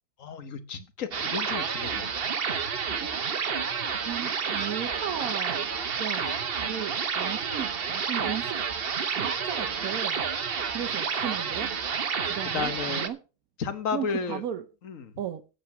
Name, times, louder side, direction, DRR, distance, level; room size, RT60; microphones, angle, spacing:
voice 1, 0.2-2.2 12.5-13.1 13.6-14.4 14.8-15.1, left 6 dB, 55° left, 11 dB, 1.5 m, -33 dB
sound 1, 1.1-13.1, right 6 dB, 45° right, 1.0 m, -30 dB
voice 2, 3.0-3.4 4.1-5.6 6.0-6.4 6.7-8.6 9.1-10.2 10.7-11.7 12.2-13.2 13.9-14.7 15.2-15.4, right 10 dB, 65° right, 6 dB, 1.2 m, -35 dB
9.4 x 8.6 x 5.8 m, 0.34 s
omnidirectional pair, 1.7 m